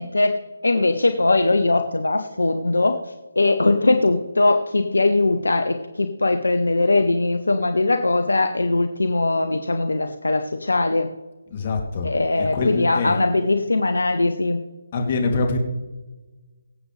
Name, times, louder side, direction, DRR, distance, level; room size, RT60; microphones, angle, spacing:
voice 1, 0.0-11.1 12.0-14.6, left 2 dB, 75° left, 8 dB, 1.1 m, -20 dB
voice 2, 11.5-12.1 12.4-13.2 14.9-15.6, left 3 dB, 35° left, 2 dB, 2.9 m, -24 dB
24.0 x 8.1 x 3.4 m, 1.2 s
figure-of-eight pair, 150°, 0 cm